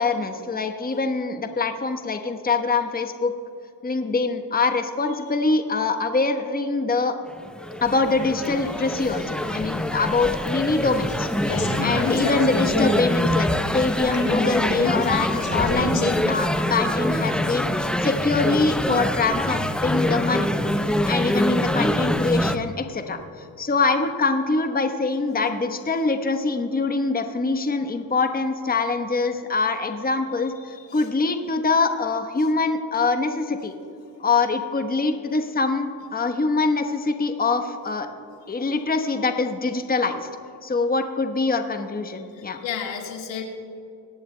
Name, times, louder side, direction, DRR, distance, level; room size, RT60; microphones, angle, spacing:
voice 1, 0.0-3.3 3.8-7.2 7.8-20.5 21.0-33.7 34.2-38.1 38.5-40.3 40.6-42.6, left 3 dB, 20° left, 6 dB, 1.0 m, -24 dB
sound 1, 7.3-22.6, left 1 dB, ahead, 0.5 m, -25 dB
sound 2, 8.3-11.2 11.4-12.9 13.2-13.3 13.5-16.0, left 3 dB, 55° left, 2.6 m, -30 dB
voice 2, 30.7-31.1 42.4-43.4, left 8 dB, 75° left, 2 dB, 1.7 m, -33 dB
24.5 x 11.0 x 2.2 m, 2.7 s
supercardioid pair, 60°, 45 cm